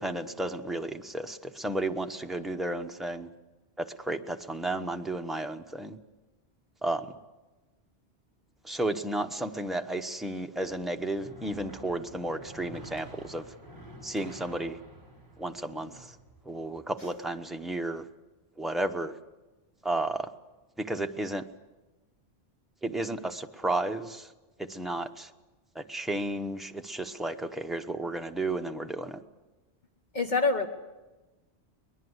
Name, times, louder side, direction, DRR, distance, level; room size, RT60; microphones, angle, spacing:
voice 1, 0.0-3.3 3.8-6.0 6.8-7.1 8.6-13.4 14.0-14.8 15.4-16.1 16.5-18.0 18.6-19.1 19.8-20.3 20.8-21.5 22.8-24.3 24.7-25.3 25.7-29.2, right 2 dB, ahead, 4 dB, 0.9 m, -33 dB
sound 1, 10.7-16.8, right 1 dB, 20° left, 5.2 m, -49 dB
voice 2, 30.1-30.7, left 3 dB, 45° left, 4 dB, 1.4 m, -25 dB
22.5 x 21.0 x 8.1 m, 1.1 s
omnidirectional pair, 1.1 m